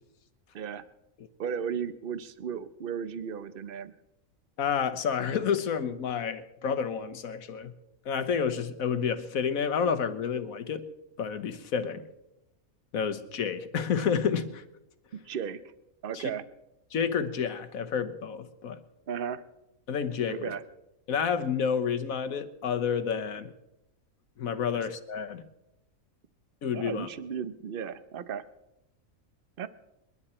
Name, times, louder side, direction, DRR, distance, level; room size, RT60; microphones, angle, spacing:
voice 1, 0.5-0.9 1.4-4.0 15.3-15.6 16.0-16.4 19.1-19.4 20.3-20.6 24.7-24.9 26.7-28.4 29.6-29.7, right 7 dB, 45° right, 13 dB, 0.9 m, -35 dB
voice 2, 4.6-7.7 8.0-10.9 11.2-12.0 12.9-14.6 16.1-16.3 16.9-18.8 19.9-20.5 21.1-23.5 24.4-25.4 26.6-27.1, left 7 dB, 75° left, 11 dB, 1.5 m, -30 dB
27.0 x 11.0 x 4.3 m, 0.90 s
omnidirectional pair, 1.5 m